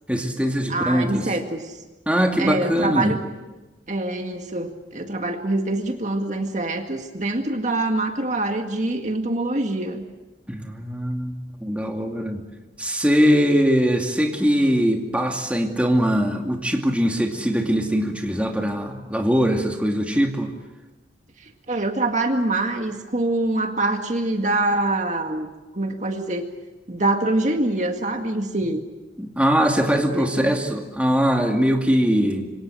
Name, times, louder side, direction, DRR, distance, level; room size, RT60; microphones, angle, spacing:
voice 1, 0.1-1.3 2.1-3.1 10.5-11.3 11.6-12.4 12.8-20.5 29.2-32.5, equal, 5° right, 2 dB, 2.4 m, -21 dB
voice 2, 0.7-1.8 2.4-3.2 3.9-10.0 21.4-26.5 26.9-28.8 30.1-30.5, right 2 dB, 40° right, 4 dB, 2.0 m, -25 dB
26.5 x 25.5 x 7.8 m, 1.1 s
head